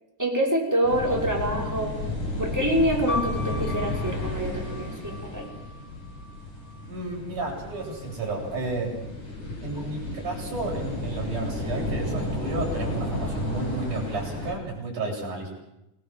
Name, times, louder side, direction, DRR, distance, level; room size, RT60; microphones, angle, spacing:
voice 1, 0.2-2.0 2.4-5.5, right 1 dB, 5° right, -1 dB, 5.9 m, -26 dB
sound 1, 0.8-14.5, left 2 dB, 65° left, 8.9 m, -33 dB
sound 2, 3.1-6.9 7.7-8.5, left 3 dB, 35° left, 3.7 m, -38 dB
voice 2, 6.9-8.9 9.6-15.5, right 3 dB, 65° right, -2 dB, 9.6 m, -32 dB
30.0 x 20.0 x 7.7 m, 0.91 s
omnidirectional pair, 3.8 m